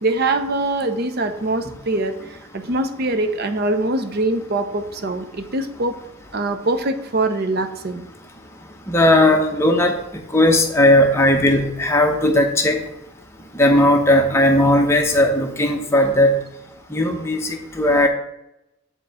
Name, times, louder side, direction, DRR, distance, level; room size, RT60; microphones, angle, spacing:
voice 1, 0.0-5.9 6.3-8.1, right 2 dB, 45° right, 8 dB, 0.6 m, -23 dB
voice 2, 8.9-10.0 10.3-12.9 13.5-16.4 16.9-18.1, left 1 dB, 10° left, 2 dB, 0.8 m, -16 dB
6.7 x 4.8 x 4.8 m, 0.85 s
head